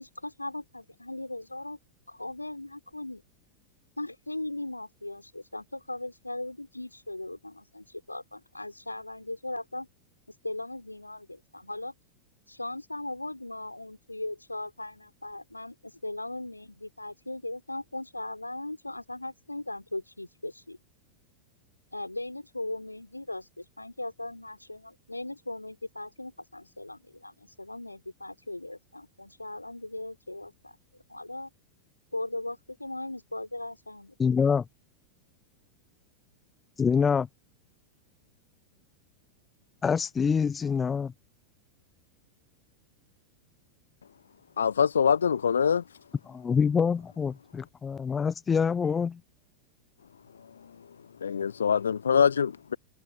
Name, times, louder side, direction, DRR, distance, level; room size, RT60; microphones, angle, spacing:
voice 1, 0.0-1.8 2.1-3.2 4.0-9.9 10.3-11.9 12.5-20.8 21.9-30.8 31.1-31.5 32.1-34.1, left 2 dB, 85° left, 4.6 m, -38 dB
voice 2, 34.2-34.6 36.8-37.3 39.8-41.1 46.3-49.2, left 6 dB, 20° left, 0.8 m, -26 dB
voice 3, 44.6-45.8 51.2-52.8, left 7 dB, 70° left, 0.8 m, -24 dB
figure-of-eight pair, 90°, 0 cm